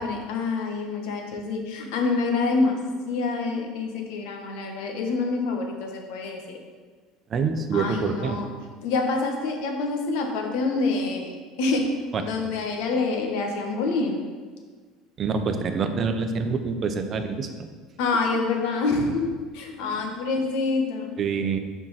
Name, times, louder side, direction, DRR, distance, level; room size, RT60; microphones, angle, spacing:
voice 1, 0.0-2.8 3.1-6.6 7.7-8.5 8.8-11.9 12.2-14.2 18.0-21.1, left 3 dB, 75° left, 2 dB, 1.4 m, -26 dB
voice 2, 7.3-8.4 12.1-12.2 15.2-17.5 20.0-20.1 21.2-21.6, right 5 dB, 35° right, 6 dB, 0.8 m, -26 dB
7.1 x 4.5 x 5.7 m, 1.5 s
supercardioid pair, 115°, 0 cm